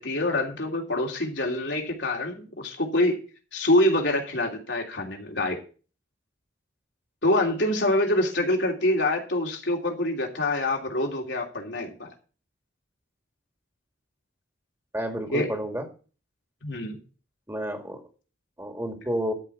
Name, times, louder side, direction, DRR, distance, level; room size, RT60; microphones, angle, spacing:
voice 1, 0.0-3.2 3.5-5.6 7.2-12.1 15.3-15.5 16.6-17.0, left 1 dB, 65° left, 1 dB, 3.0 m, -25 dB
voice 2, 14.9-15.8 17.5-18.0 18.6-19.3, equal, 15° right, 4 dB, 2.0 m, -30 dB
13.0 x 5.2 x 8.4 m, 0.37 s
head